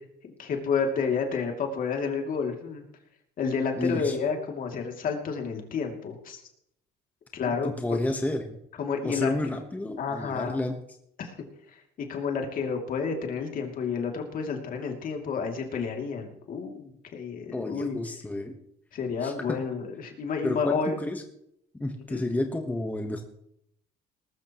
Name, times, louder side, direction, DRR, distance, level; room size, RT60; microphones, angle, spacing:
voice 1, 0.2-2.8 3.4-6.4 7.3-7.7 8.8-9.3 10.0-10.6 11.2-11.3 11.7-18.0 18.9-21.0 22.1-22.2, left 5 dB, 55° left, 2 dB, 2.8 m, -30 dB
voice 2, 3.8-4.2 7.4-8.6 9.0-10.7 17.5-18.6 19.2-19.6 20.4-21.2 21.7-23.2, left 2 dB, 10° left, 4 dB, 1.2 m, -30 dB
19.5 x 13.5 x 3.1 m, 0.74 s
cardioid pair, 110°, 17 cm